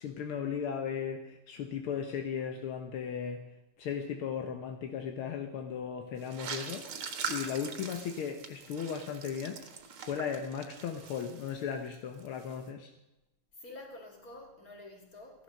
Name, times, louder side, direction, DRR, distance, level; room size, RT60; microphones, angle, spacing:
voice 1, 0.0-3.4 3.8-7.0 7.3-9.6 10.0-12.9, left 7 dB, 80° left, 5 dB, 1.9 m, -36 dB
sound 1, 6.2-11.9 12.2-12.6, right 6 dB, 80° right, 2.3 m, -42 dB
voice 2, 13.5-15.4, left 2 dB, 40° left, 1 dB, 3.3 m, -49 dB
16.0 x 11.5 x 6.5 m, 0.96 s
omnidirectional pair, 2.4 m